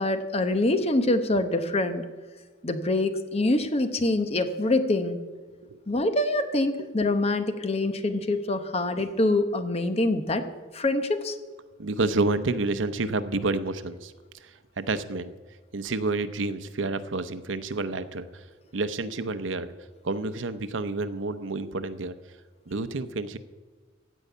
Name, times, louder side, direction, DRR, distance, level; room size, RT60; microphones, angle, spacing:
voice 1, 0.0-2.0 2.6-5.2 5.9-11.4, left 2 dB, 35° left, 9 dB, 0.9 m, -25 dB
voice 2, 11.8-14.1 14.4-14.5 14.8-15.3 15.7-18.4 18.7-19.7 20.0-22.1 22.7-23.4, right 3 dB, 80° right, 11 dB, 0.7 m, -29 dB
15.5 x 5.4 x 8.3 m, 1.4 s
head